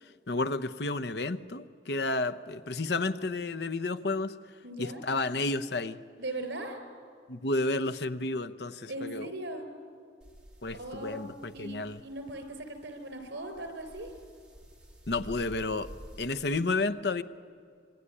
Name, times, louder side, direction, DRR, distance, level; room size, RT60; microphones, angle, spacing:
voice 1, 0.3-4.3 4.8-6.0 7.3-9.3 10.6-12.0 15.1-15.9 16.2-17.2, left 2 dB, 65° left, 12 dB, 0.9 m, -31 dB
voice 2, 4.6-5.0 6.2-6.8 8.9-9.7 10.7-14.1, right 1 dB, 90° right, 8 dB, 4.1 m, -39 dB
sound 1, 10.2-16.6, equal, 5° right, 3.0 m, -51 dB
26.0 x 22.5 x 9.9 m, 2.3 s
head